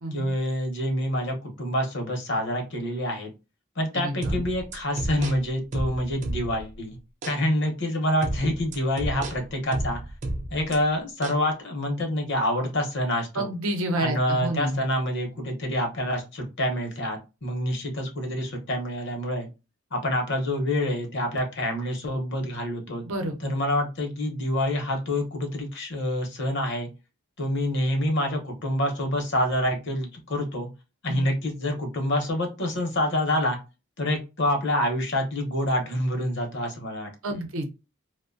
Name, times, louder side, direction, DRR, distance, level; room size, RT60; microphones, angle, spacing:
voice 1, 0.1-3.3 3.8-7.0 7.2-10.0 10.5-13.5 14.0-19.5 19.9-23.0 23.4-26.9 27.4-30.7 31.0-33.6 34.0-37.4, left 1 dB, 55° left, 3 dB, 0.7 m, -27 dB
voice 2, 4.0-4.4 13.3-14.8 23.0-23.5 31.1-31.2 37.2-37.7, right 1 dB, 80° right, 5 dB, 0.7 m, -29 dB
sound 1, 4.2-6.7 7.2-7.4 8.2-10.8 11.2-11.4, right 1 dB, 35° right, 0.4 m, -32 dB
2.5 x 2.1 x 2.5 m, 0.28 s
head